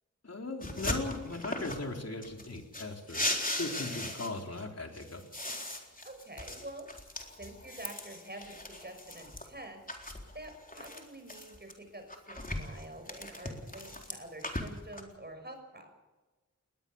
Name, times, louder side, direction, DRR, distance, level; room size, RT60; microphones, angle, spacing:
voice 1, 0.2-3.3 3.6-5.2, left 2 dB, 55° left, 3 dB, 3.8 m, -38 dB
sound 1, 0.6-1.9 2.2-4.6 4.9-9.5 9.9-11.7 12.1-15.0, left 1 dB, 30° left, 4.0 m, -38 dB
voice 2, 6.0-6.9 7.3-9.8 10.3-15.9, right 1 dB, 35° right, 5 dB, 6.2 m, -47 dB
20.5 x 20.0 x 7.1 m, 1.2 s
wide cardioid pair, 60°, 29 cm